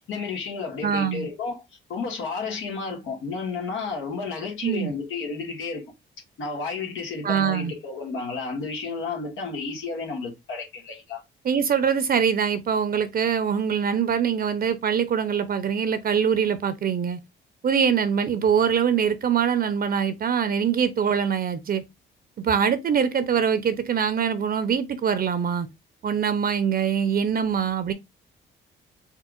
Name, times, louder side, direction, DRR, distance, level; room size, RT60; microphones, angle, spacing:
voice 1, 0.0-5.9 6.4-11.2, left 4 dB, 85° left, 1.7 m, -32 dB
voice 2, 0.8-1.3 4.6-4.9 7.2-7.7 11.4-17.2 17.6-21.8 22.4-25.7 26.0-27.9, right 7 dB, 50° right, 0.7 m, -23 dB
4.5 x 3.6 x 2.4 m
cardioid pair, 90°, 20 cm